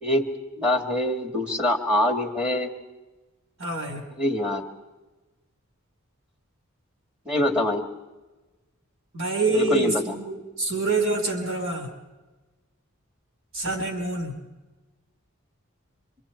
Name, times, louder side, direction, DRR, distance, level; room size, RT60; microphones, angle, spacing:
voice 1, 0.0-2.7 4.2-4.6 7.3-7.8 9.5-10.0, left 1 dB, 5° right, 3 dB, 1.9 m, -24 dB
voice 2, 3.6-4.0 9.1-11.9 13.5-14.4, right 3 dB, 65° right, 3 dB, 4.2 m, -26 dB
27.0 x 25.5 x 4.4 m, 1.2 s
head